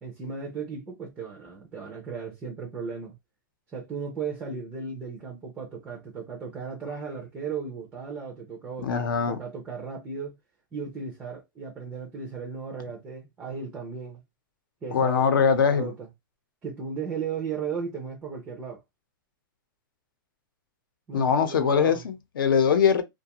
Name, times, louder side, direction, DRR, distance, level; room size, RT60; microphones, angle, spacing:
voice 1, 0.0-3.2 3.7-10.4 10.7-14.2 14.8-16.1 16.6-18.8 21.1-22.0, right 5 dB, 10° right, 0.4 m, -36 dB
voice 2, 8.8-9.4 14.9-15.9 21.1-23.0, left 6 dB, 80° left, 0.7 m, -22 dB
2.4 x 2.2 x 2.8 m
supercardioid pair, 175°, 11 cm